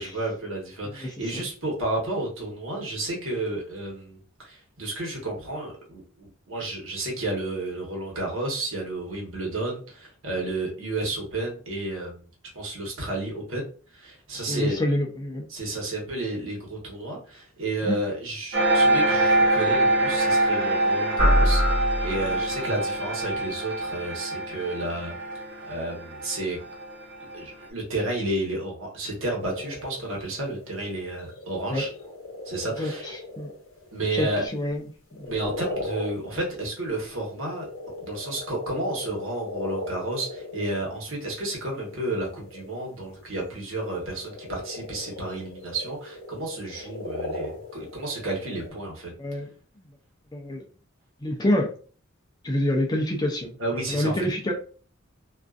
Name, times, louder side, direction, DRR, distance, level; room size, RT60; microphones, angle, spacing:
voice 1, 0.0-12.2 12.5-13.7 13.9-14.8 15.5-25.1 25.6-26.6 27.3-31.9 32.4-33.1 33.9-34.4 35.3-37.7 38.0-49.1 53.6-54.3, right 2 dB, 70° right, -1 dB, 1.1 m, -31 dB
voice 2, 1.0-1.4 14.3-15.4 17.8-18.0 31.7-31.8 32.8-33.5 34.1-34.8 35.1-35.3 46.7-46.9 49.2-49.5 50.3-50.6 51.2-51.7 52.4-53.5 53.9-54.5, left 1 dB, 20° left, 2 dB, 0.4 m, -27 dB
sound 1, 18.5-27.5, right 1 dB, 50° right, 0.6 m, -25 dB
sound 2, 21.2-22.8, equal, 15° right, 1.0 m, -23 dB
sound 3, 29.4-34.5 35.1-36.8 37.1-40.8 41.2-43.3 43.7-48.7, left 2 dB, 75° left, 0.7 m, -38 dB
2.5 x 2.3 x 2.3 m, 0.39 s
head